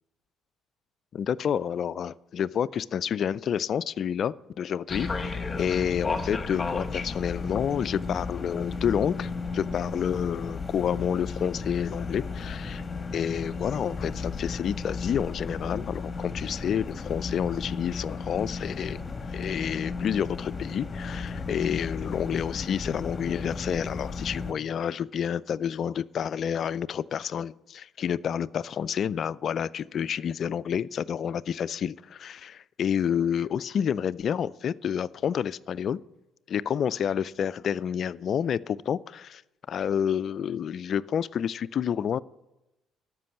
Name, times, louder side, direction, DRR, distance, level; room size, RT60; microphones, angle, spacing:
voice 1, 1.1-12.8 13.1-19.0 19.3-36.0 36.5-39.4 39.7-42.2, left 8 dB, 55° left, 0.3 m, -29 dB
sound 1, 4.9-24.5, left 4 dB, 30° left, 1.3 m, -34 dB
12.5 x 6.1 x 8.5 m
hypercardioid pair, 50°, 0 cm